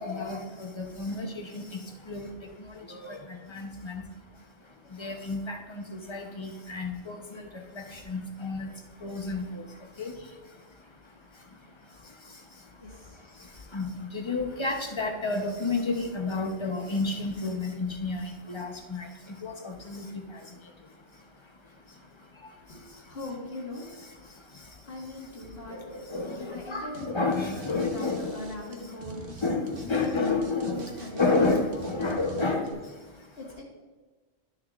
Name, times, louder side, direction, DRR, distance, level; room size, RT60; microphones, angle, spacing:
voice 1, 0.0-23.3 23.8-33.4, left 3 dB, 30° left, 3 dB, 0.6 m, -33 dB
voice 2, 12.8-13.2 22.7-23.8 24.9-25.8 26.5-27.0 27.5-29.3 30.0-30.1 30.7-31.5 31.7-32.5 33.4-33.6, left 2 dB, 60° left, -6 dB, 1.8 m, -40 dB
sound 1, 26.9-27.0 27.3-32.7, right 3 dB, 55° right, 1.0 m, -44 dB
12.0 x 6.5 x 2.4 m, 1.3 s
omnidirectional pair, 1.2 m